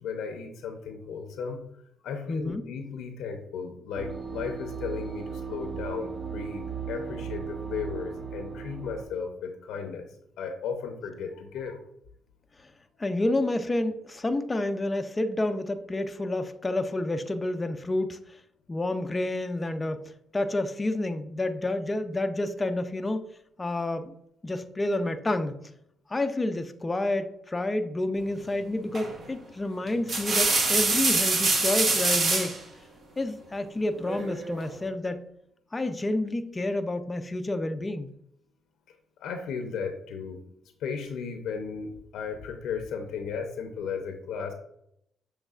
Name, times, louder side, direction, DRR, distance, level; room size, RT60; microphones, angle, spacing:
voice 1, 0.0-1.6 2.0-10.1 10.4-11.8 39.2-40.4 40.8-44.5, left 6 dB, 85° left, 5 dB, 0.6 m, -35 dB
voice 2, 2.3-2.6 13.0-18.4 18.7-23.2 23.6-24.2 24.4-25.6 26.1-32.6 33.2-35.3 35.7-38.1, left 2 dB, 20° left, 8 dB, 0.4 m, -29 dB
sound 1, 4.0-9.1, right 6 dB, 35° right, 0.5 m, -36 dB
sound 2, 28.9-29.2 29.9-32.6 34.0-34.7, right 3 dB, 50° right, 1.0 m, -25 dB
6.4 x 3.2 x 2.4 m, 0.75 s
cardioid pair, 90°, 0 cm